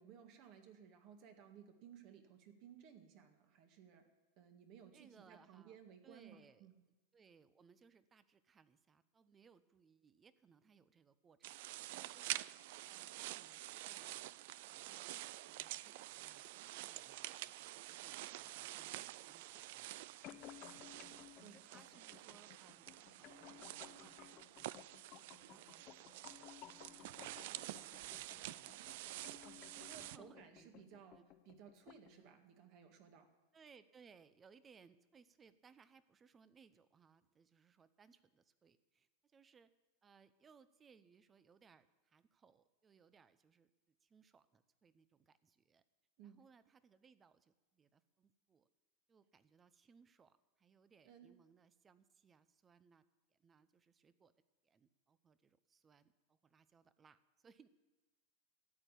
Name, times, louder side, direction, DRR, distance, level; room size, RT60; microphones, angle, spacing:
voice 1, 0.0-4.1 4.4-6.8 21.4-21.6 29.4-33.3 46.2-46.4 51.0-51.3, right 8 dB, 50° right, 6 dB, 1.9 m, -59 dB
voice 2, 4.9-5.8 6.0-6.7 7.1-14.2 14.7-24.9 25.2-26.2 26.7-29.1 29.7-30.7 31.2-31.3 32.1-32.3 33.5-39.7 40.0-45.8 46.2-48.7 49.1-53.0 53.3-54.3 54.6-57.7, right 6 dB, 20° right, 15 dB, 0.7 m, -68 dB
sound 1, 11.4-30.2, right 16 dB, 65° right, 0.3 m, -49 dB
sound 2, 20.2-32.2, left 12 dB, 40° left, 0.8 m, -59 dB
13.5 x 9.1 x 8.4 m, 1.1 s
supercardioid pair, 140°, 0 cm